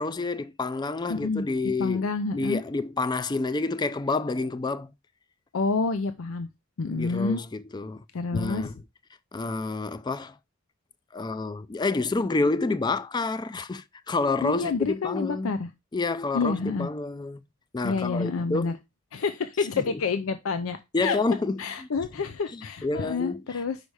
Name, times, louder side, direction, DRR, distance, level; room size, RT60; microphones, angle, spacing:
voice 1, 0.0-2.1 2.3-4.9 6.9-8.0 8.3-8.8 9.3-10.3 11.1-15.5 15.9-17.4 17.7-18.8 19.8-20.0 20.9-21.6 22.5-23.6, left 3 dB, 20° left, 0.4 m, -29 dB
voice 2, 1.1-1.5 1.8-2.6 5.5-6.5 6.8-7.4 8.1-8.7 14.4-15.7 16.3-16.9 17.8-18.7 19.1-21.2 21.6-23.8, left 4 dB, 75° left, 0.5 m, -28 dB
5.3 x 4.9 x 4.7 m
head